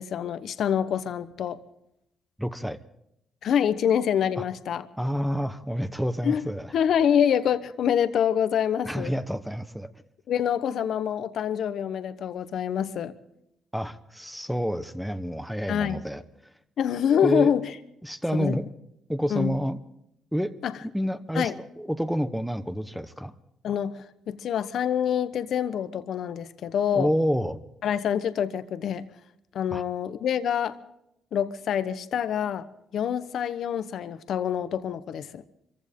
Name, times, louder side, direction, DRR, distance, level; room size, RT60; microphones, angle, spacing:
voice 1, 0.0-1.6 3.4-4.8 6.2-6.4 6.7-9.1 10.3-13.1 15.7-16.0 16.8-17.7 18.3-18.6 19.3-19.5 20.6-20.7 21.3-21.5 23.6-27.1 27.8-29.1 29.5-30.8 31.3-32.7 32.9-35.4, left 8 dB, 70° left, 12 dB, 1.1 m, -26 dB
voice 2, 2.4-2.8 5.0-6.7 8.8-9.9 13.7-16.2 17.2-17.5 18.0-18.7 19.1-19.8 20.3-20.6 20.8-21.5 21.8-23.3 26.9-27.6 29.7-29.8, equal, ahead, 10 dB, 1.2 m, -28 dB
25.0 x 15.5 x 3.7 m, 0.79 s
cardioid pair, 90°, 0 cm